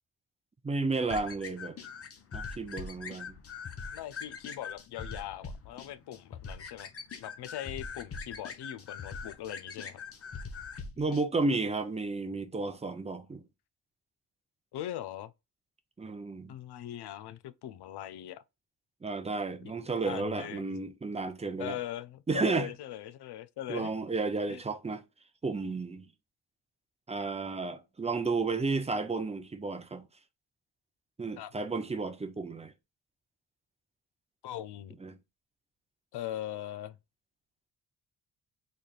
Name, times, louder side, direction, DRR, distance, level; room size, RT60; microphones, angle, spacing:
voice 1, 0.6-1.8 2.3-3.4 11.0-13.4 16.0-16.5 19.0-21.8 22.3-22.7 23.7-25.0 25.4-26.0 27.1-30.0 31.2-32.7 35.0-35.2, right 3 dB, 15° right, 0.5 m, -32 dB
sound 1, 1.1-11.2, left 5 dB, 40° left, 0.7 m, -42 dB
voice 2, 3.9-6.9 7.2-10.0 14.7-15.3 16.5-18.4 20.0-20.8 21.6-23.9 24.5-24.6 31.4-31.5 34.4-35.0 36.1-37.0, left 12 dB, 90° left, 0.5 m, -40 dB
4.1 x 3.2 x 2.4 m
wide cardioid pair, 125°, 38 cm